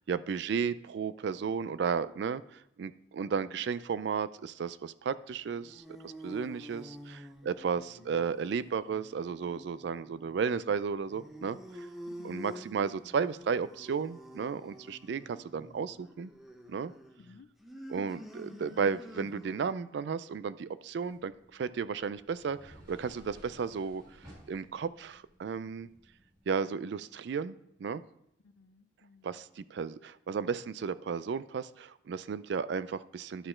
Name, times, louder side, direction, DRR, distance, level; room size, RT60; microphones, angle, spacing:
voice 1, 0.0-11.9 12.2-16.3 16.7-16.9 17.9-24.0 24.5-25.9 26.5-28.0 29.2-33.5, right 6 dB, 60° right, 16 dB, 0.3 m, -34 dB
sound 1, 5.3-19.8, equal, ahead, 0.5 m, -49 dB
voice 2, 8.0-8.4 12.1-12.9 17.2-17.5 28.4-29.4, left 4 dB, 65° left, 14 dB, 0.4 m, -57 dB
sound 2, 21.0-26.5, equal, 25° right, 3.3 m, -57 dB
11.5 x 4.4 x 4.3 m, 0.76 s
head